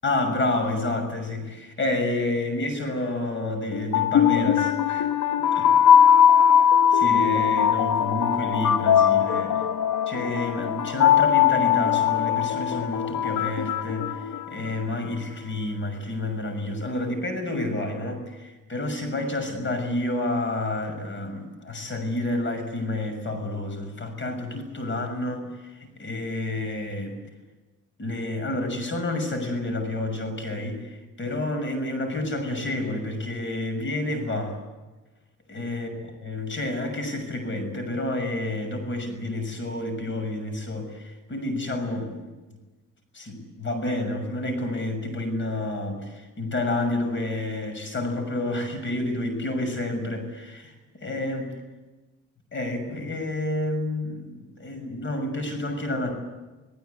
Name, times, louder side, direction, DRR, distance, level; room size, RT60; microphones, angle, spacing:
voice 1, 0.0-5.1 5.5-5.7 6.9-9.6 10.1-27.2 28.0-34.6 35.5-35.9 36.2-42.3 43.1-51.5 52.5-56.1, left 2 dB, 40° left, 7 dB, 6.6 m, -29 dB
sound 1, 3.7-14.8, left 9 dB, 75° left, 1.0 m, -20 dB
28.5 x 19.0 x 8.3 m, 1.2 s
cardioid pair, 90°, 30 cm